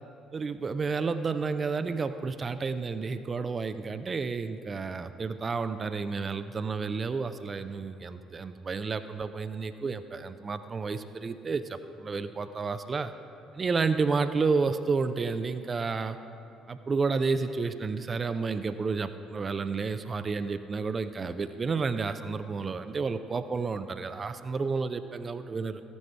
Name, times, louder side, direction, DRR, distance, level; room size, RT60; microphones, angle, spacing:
voice 1, 0.3-13.1 13.5-16.2 16.7-25.8, right 4 dB, 35° right, 11 dB, 0.4 m, -31 dB
14.0 x 9.4 x 3.4 m, 2.7 s
figure-of-eight pair, 50°, 0 cm